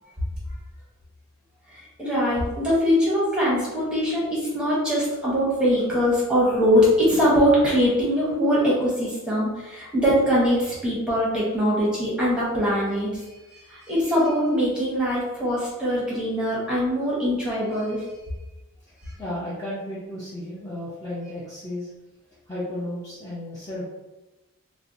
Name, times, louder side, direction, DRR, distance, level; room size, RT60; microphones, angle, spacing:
voice 1, 1.7-13.2 13.5-18.0, equal, 5° right, -7 dB, 1.0 m, -22 dB
voice 2, 19.2-21.9 22.5-23.8, left 1 dB, 15° left, -9 dB, 0.6 m, -33 dB
4.3 x 2.1 x 2.6 m, 1.1 s
head